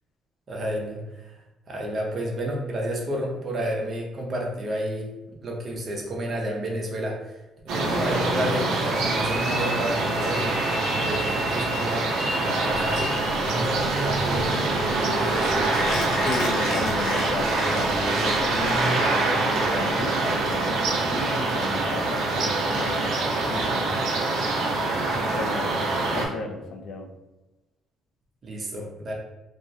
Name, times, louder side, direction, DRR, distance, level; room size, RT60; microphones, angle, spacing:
voice 1, 0.5-1.4 1.7-5.1 5.4-13.2 13.4-14.6 15.1-15.6 28.4-29.1, equal, 30° right, -1 dB, 0.5 m, -31 dB
sound 1, 7.7-26.3, right 2 dB, 80° right, 0.5 m, -25 dB
sound 2, 8.8-13.6, left 1 dB, 5° left, 0.7 m, -34 dB
Mechanisms, 12.7-18.8, left 1 dB, 75° left, 0.7 m, -32 dB
voice 2, 16.2-23.1 23.5-24.0 24.7-27.1, left 3 dB, 55° left, 3 dB, 0.3 m, -35 dB
2.3 x 2.0 x 2.6 m, 1.0 s
cardioid pair, 160°, 0 cm